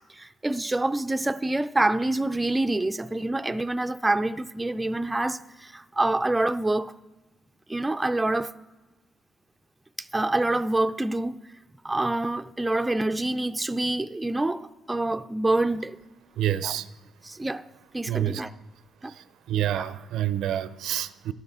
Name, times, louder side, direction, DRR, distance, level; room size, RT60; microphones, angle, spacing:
voice 1, 0.0-7.0 7.7-8.5 10.0-11.4 11.8-16.0 16.6-16.8 17.2-17.6 17.9-18.5 19.0-19.1 19.7-19.9, right 2 dB, 15° right, 0.3 m, -26 dB
voice 2, 16.4-16.9 18.1-18.4 19.5-21.3, right 12 dB, 80° right, 0.4 m, -27 dB
12.5 x 11.0 x 3.6 m
cardioid pair, 90°, 0 cm